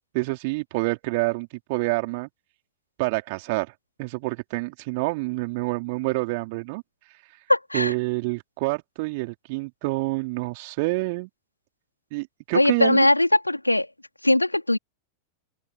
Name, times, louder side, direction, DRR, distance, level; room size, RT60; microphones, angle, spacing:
voice 1, 0.0-2.3 3.0-3.7 4.0-6.8 7.7-11.3 12.1-13.1, right 26 dB, 50° right, 4.3 m, -27 dB
voice 2, 7.5-7.9 12.5-13.9 14.2-14.8, left 1 dB, 85° left, 3.4 m, -20 dB
open air
figure-of-eight pair, 90°, 0 cm